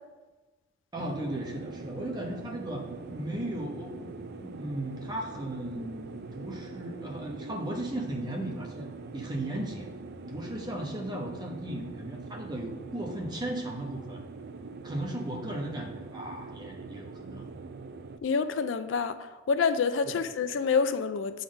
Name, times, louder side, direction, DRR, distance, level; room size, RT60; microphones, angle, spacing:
voice 1, 0.9-4.1 4.4-8.9 9.1-9.9 10.3-14.2 14.8-17.5 20.0-20.2, right 1 dB, 20° right, 0 dB, 1.0 m, -36 dB
sound 1, 1.0-18.2, right 4 dB, 55° right, 0.4 m, -43 dB
voice 2, 18.2-21.4, left 5 dB, 70° left, 11 dB, 0.4 m, -27 dB
8.4 x 4.0 x 5.2 m, 1.2 s
head